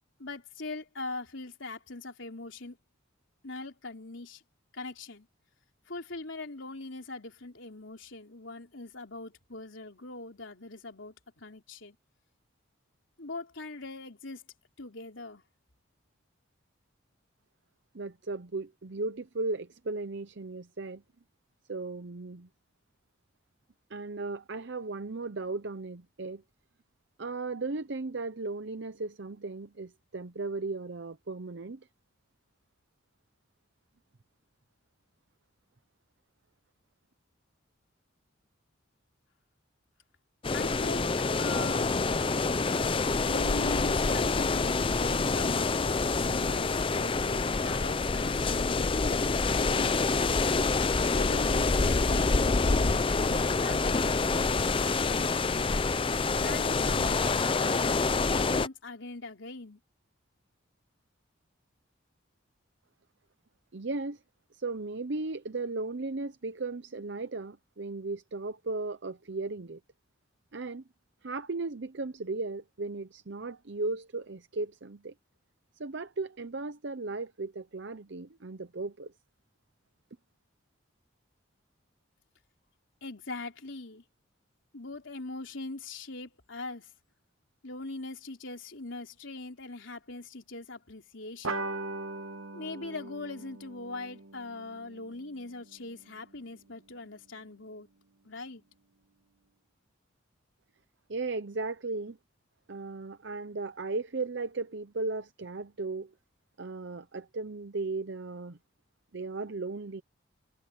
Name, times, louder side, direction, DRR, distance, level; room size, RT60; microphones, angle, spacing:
voice 1, 0.2-2.8 3.4-4.4 4.7-5.3 5.9-12.0 13.2-14.5 14.8-15.4 40.5-41.1 41.4-41.9 43.2-50.0 51.1-55.7 56.4-59.8 83.0-84.0 84.7-86.9 87.6-91.7 92.5-97.9 98.2-98.6, left 2 dB, 65° left, 3.7 m, -41 dB
voice 2, 17.9-21.0 21.7-22.5 23.9-26.4 27.2-31.9 63.7-64.2 64.5-69.8 70.5-70.8 71.2-75.1 75.8-79.1 101.1-102.2 102.7-106.1 106.6-108.6 109.1-110.0, right 3 dB, 60° right, 0.7 m, -36 dB
sound 1, 40.4-58.7, left 4 dB, 25° left, 0.5 m, -27 dB
sound 2, 91.4-96.4, right 2 dB, 90° right, 1.4 m, -40 dB
head